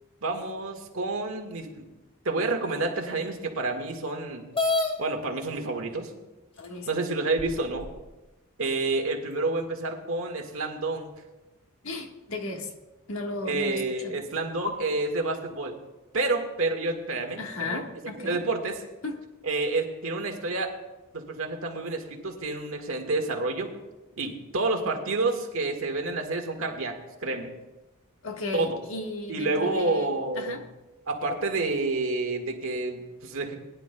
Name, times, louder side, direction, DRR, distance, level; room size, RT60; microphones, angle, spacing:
voice 1, 0.2-1.9 2.2-4.4 5.0-6.1 6.9-7.9 8.6-11.1 13.4-15.8 16.1-17.8 18.2-18.8 19.4-20.7 21.1-23.7 24.2-26.9 27.2-27.5 28.5-28.8 29.3-30.6 31.1-33.6, right 3 dB, 70° right, 3 dB, 1.7 m, -29 dB
sound 1, 4.5-4.9 5.9-6.0 6.6-6.7 7.4-8.1, left 3 dB, 25° left, 1.3 m, -27 dB
voice 2, 6.6-7.0 11.8-12.7 13.1-14.2 17.4-18.4 19.0-19.3 28.2-30.6, left 2 dB, 70° left, 2 dB, 1.5 m, -35 dB
21.0 x 10.5 x 2.3 m, 1.1 s
head